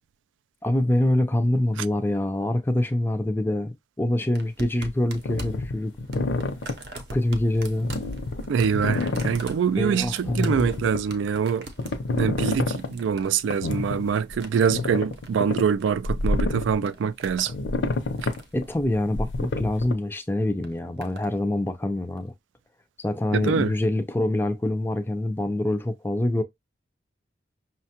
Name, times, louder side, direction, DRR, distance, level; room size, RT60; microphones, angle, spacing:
voice 1, 0.6-5.9 6.9-7.9 9.7-10.6 18.5-22.3 23.0-26.4, left 1 dB, 10° left, 0.4 m, -25 dB
sound 1, 4.3-16.3 16.6-17.6 17.9-18.6 19.6-19.9 20.6-21.3 22.2-22.3, right 1 dB, 60° right, 0.7 m, -42 dB
sound 2, 5.2-6.8 7.8-9.4 10.0-11.0 11.8-12.9 13.5-14.0 14.3-14.4 14.6-16.8 17.3-19.9, left 2 dB, 80° left, 0.6 m, -28 dB
voice 2, 8.5-11.7 12.1-17.5 23.3-23.7, right 6 dB, 85° right, 0.3 m, -24 dB
5.6 x 2.2 x 2.8 m
head